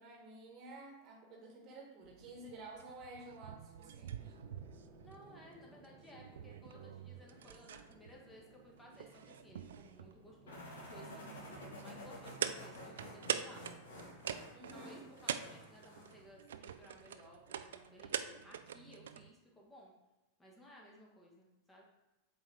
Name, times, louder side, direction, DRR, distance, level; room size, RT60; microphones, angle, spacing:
voice 1, 0.0-4.3 14.5-15.1, right 2 dB, 40° right, 0 dB, 1.4 m, -52 dB
sound 1, 2.0-19.3, right 9 dB, 60° right, 0.3 m, -45 dB
sound 2, 4.1-18.1, right 1 dB, 20° right, 1.3 m, -65 dB
voice 2, 5.0-13.6 14.7-19.9 20.4-21.8, equal, 10° left, -2 dB, 1.4 m, -58 dB
sound 3, 10.5-16.3, equal, 65° left, 1.7 m, -51 dB
7.8 x 4.0 x 3.4 m, 1.0 s
figure-of-eight pair, 90°, 0 cm